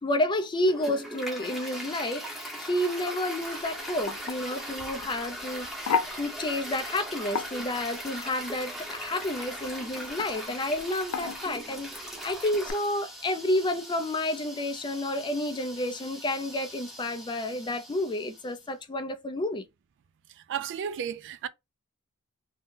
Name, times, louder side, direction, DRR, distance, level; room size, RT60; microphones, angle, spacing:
voice 1, 0.0-19.7, left 1 dB, 20° left, 0.4 m, -30 dB
Toilet flush, 0.6-18.6, equal, ahead, 0.8 m, -40 dB
sound 1, 3.4-12.7, left 6 dB, 80° left, 0.4 m, -37 dB
voice 2, 20.5-21.5, right 8 dB, 55° right, 0.3 m, -33 dB
2.7 x 2.1 x 3.6 m
head